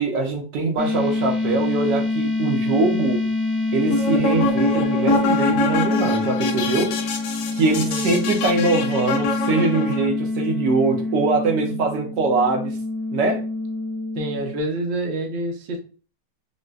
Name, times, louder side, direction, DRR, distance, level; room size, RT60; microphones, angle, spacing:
voice 1, 0.0-3.3 3.7-6.9 7.5-12.8 13.1-13.5, right 3 dB, 75° right, 1.3 m, -23 dB
sound 1, 0.8-14.6, left 2 dB, 35° left, 1.1 m, -26 dB
sound 2, 3.8-10.1, left 2 dB, 70° left, 1.2 m, -24 dB
voice 2, 14.1-15.8, right 1 dB, 55° right, 0.7 m, -27 dB
5.0 x 2.1 x 2.3 m
omnidirectional pair, 2.0 m